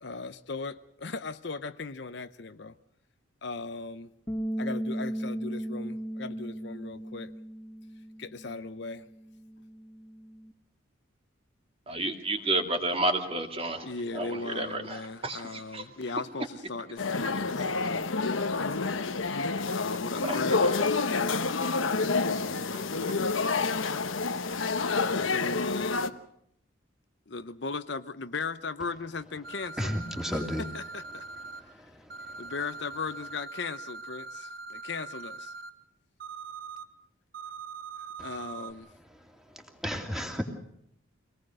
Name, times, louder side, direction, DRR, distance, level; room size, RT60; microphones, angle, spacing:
voice 1, 0.0-2.8 3.4-4.1 4.6-7.3 8.2-9.1 13.8-18.1 19.7-20.8 22.1-22.9 25.1-26.2 27.3-30.0 30.3-31.2 31.6-31.9 32.4-35.5 38.2-38.9, left 4 dB, 55° left, 11 dB, 0.7 m, -38 dB
Bass guitar, 4.3-10.5, right 1 dB, 15° left, 1.6 m, -37 dB
voice 2, 11.9-13.9 14.1-15.8 20.3-20.7 23.3-23.6, right 2 dB, 30° right, 4 dB, 2.2 m, -31 dB
sound 1, 17.0-26.1, left 4 dB, 75° left, 1.1 m, -28 dB
sound 2, 29.4-31.6 32.1-35.7 36.2-36.8 37.3-38.7, right 4 dB, 45° right, 1.4 m, -42 dB
voice 3, 29.8-30.6 31.5-32.5 39.3-40.4, equal, ahead, 3 dB, 2.7 m, -34 dB
25.0 x 19.0 x 6.4 m, 0.74 s
head